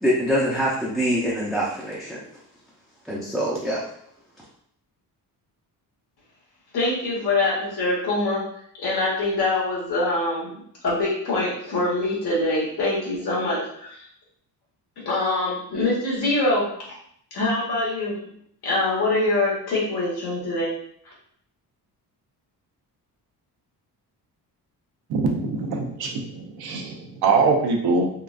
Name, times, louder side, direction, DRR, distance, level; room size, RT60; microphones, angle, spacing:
voice 1, 0.0-2.2 3.1-3.8, equal, ahead, -7 dB, 0.5 m, -24 dB
voice 2, 6.7-8.4 8.7-14.0 15.0-16.7 17.3-18.3 18.6-20.7 21.0-21.1, left 2 dB, 70° left, -5 dB, 1.3 m, -24 dB
voice 3, 25.1-28.1, right 4 dB, 70° right, 1 dB, 0.7 m, -23 dB
3.7 x 2.4 x 2.4 m, 0.67 s
cardioid pair, 105°, 40 cm